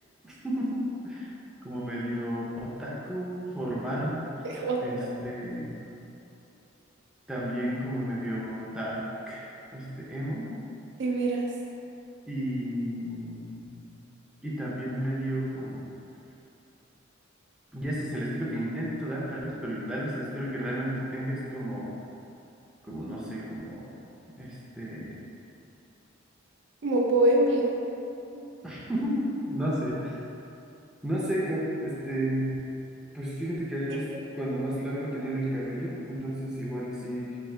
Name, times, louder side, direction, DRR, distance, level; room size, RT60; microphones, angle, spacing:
voice 1, 0.2-1.3 1.6-4.2 4.8-5.8 7.3-9.4 9.7-10.6 12.3-13.8 14.4-15.9 17.7-21.9 22.8-24.0 24.4-25.2 28.6-30.2 31.0-32.7 33.1-34.1 34.4-37.4, equal, 5° right, -7 dB, 0.5 m, -32 dB
voice 2, 4.4-5.1 11.0-11.5 26.8-27.7 28.3-28.5, right 1 dB, 60° right, -2 dB, 0.5 m, -24 dB
3.2 x 2.6 x 3.6 m, 2.9 s
head